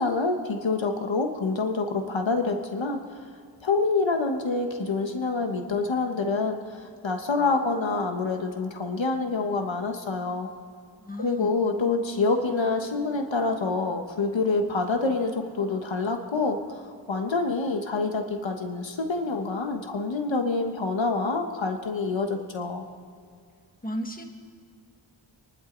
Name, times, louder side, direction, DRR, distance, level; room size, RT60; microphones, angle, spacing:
voice 1, 0.0-3.0 3.6-6.6 7.0-10.5 11.2-16.6 17.1-22.8, left 3 dB, 70° left, 4 dB, 1.3 m, -26 dB
voice 2, 11.0-11.5 23.8-24.3, equal, 20° left, 3 dB, 1.8 m, -34 dB
27.0 x 11.5 x 4.0 m, 2.3 s
wide cardioid pair, 65°, 47 cm